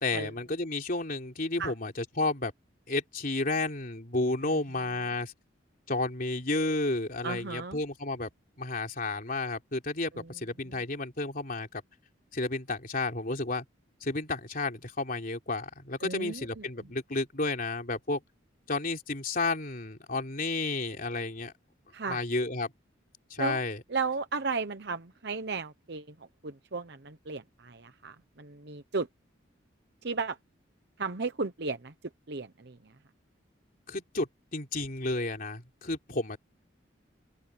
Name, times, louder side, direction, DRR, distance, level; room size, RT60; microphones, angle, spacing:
voice 1, 0.0-2.5 2.9-5.3 5.9-8.3 8.6-11.8 12.3-13.7 14.0-18.2 18.7-21.5 22.1-22.7 23.3-23.8 33.9-36.4, left 2 dB, 50° left, 3.5 m, -32 dB
voice 2, 7.2-7.8 10.1-10.3 10.7-10.8 16.0-16.6 21.9-22.2 23.4-23.6 23.9-26.1 26.4-29.1 30.0-30.4 31.0-31.9 32.3-32.8, right 4 dB, 60° right, 0.9 m, -34 dB
open air
head